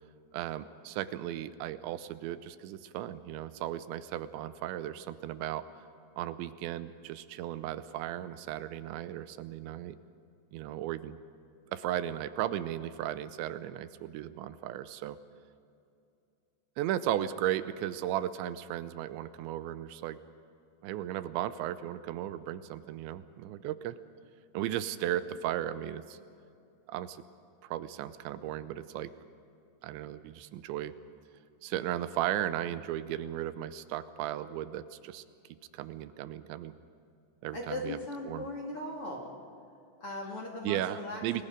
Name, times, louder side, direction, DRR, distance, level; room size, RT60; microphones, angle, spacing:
voice 1, 0.3-5.7 6.2-10.0 10.5-11.2 11.7-15.2 16.8-20.2 20.8-24.0 24.5-26.2 26.9-27.2 27.6-29.1 29.8-30.9 31.6-35.2 35.7-36.7 37.4-38.0 38.3-38.5 40.6-41.4, right 12 dB, 85° right, 13 dB, 3.0 m, -35 dB
voice 2, 37.5-39.3 40.0-41.4, left 1 dB, 40° left, -1 dB, 2.4 m, -38 dB
30.0 x 21.5 x 5.2 m, 2.6 s
omnidirectional pair, 5.2 m